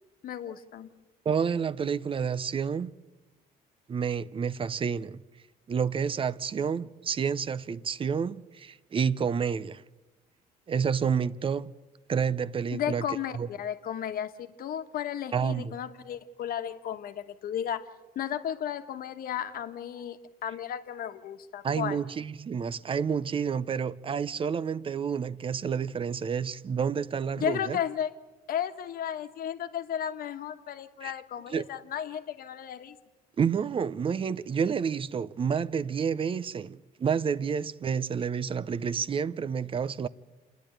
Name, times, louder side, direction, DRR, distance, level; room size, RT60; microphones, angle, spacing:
voice 1, 0.2-0.9 12.7-17.8 18.1-22.0 27.4-28.1 28.5-33.0, left 9 dB, 60° left, 1.3 m, -34 dB
voice 2, 1.3-3.0 3.9-5.2 5.7-9.8 10.7-11.7 12.1-13.0 13.3-13.5 15.3-15.7 21.6-27.8 31.0-31.1 31.5-31.7 33.4-40.1, right 6 dB, 30° right, 0.6 m, -29 dB
28.0 x 10.0 x 9.1 m
cardioid pair, 110°, 17 cm